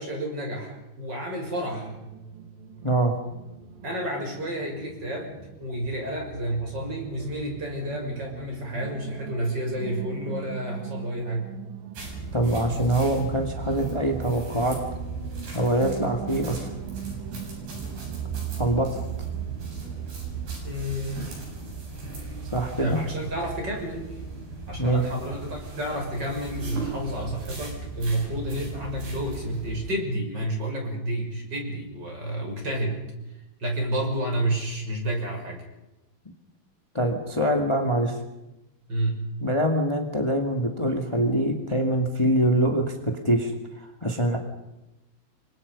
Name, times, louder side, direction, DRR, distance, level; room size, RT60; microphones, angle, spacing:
voice 1, 0.0-2.0 3.8-11.5 20.6-21.4 22.8-24.2 24.7-33.0 33.6-35.6 38.9-39.2, right 1 dB, 25° right, 1 dB, 6.8 m, -30 dB
sound 1, 1.6-20.6, right 9 dB, 90° right, 4.3 m, -39 dB
voice 2, 2.8-3.1 12.3-14.8 15.5-16.7 18.5-19.0 22.4-23.0 24.8-25.0 36.9-38.2 39.4-44.4, right 1 dB, 15° left, 3 dB, 1.0 m, -24 dB
sound 2, 11.9-29.8, right 3 dB, 65° right, 9.6 m, -37 dB
29.5 x 24.5 x 5.5 m, 0.95 s
omnidirectional pair, 4.9 m